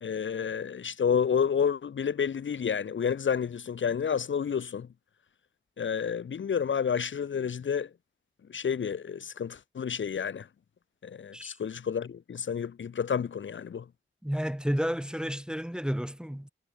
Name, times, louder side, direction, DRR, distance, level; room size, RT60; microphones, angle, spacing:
voice 1, 0.0-4.9 5.8-7.9 8.5-10.5 11.0-13.8, left 7 dB, 70° left, 0.8 m, -30 dB
voice 2, 14.2-16.5, equal, 5° right, 1.0 m, -31 dB
wide cardioid pair, 75°, 20 cm